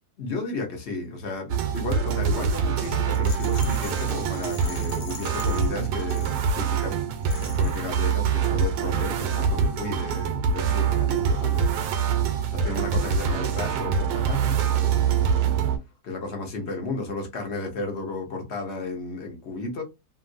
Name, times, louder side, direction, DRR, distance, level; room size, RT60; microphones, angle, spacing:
voice 1, 0.2-11.7 12.5-15.6 16.0-19.8, left 3 dB, 50° left, 0.9 m, -33 dB
sound 1, 1.5-15.8, right 7 dB, 75° right, 1.1 m, -25 dB
Rattle, 3.1-6.8 7.2-7.9, left 9 dB, 75° left, 0.8 m, -44 dB
3.0 x 2.5 x 2.5 m
omnidirectional pair, 1.9 m